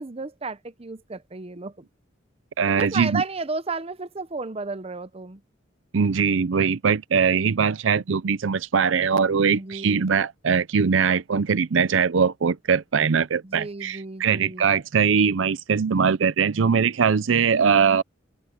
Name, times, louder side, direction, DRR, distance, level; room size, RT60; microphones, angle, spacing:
voice 1, 0.0-1.7 2.8-5.4 9.5-10.1 13.4-14.7, right 4 dB, 30° right, 0.7 m, -33 dB
voice 2, 2.6-3.2 5.9-18.0, right 6 dB, 75° right, 0.5 m, -21 dB
head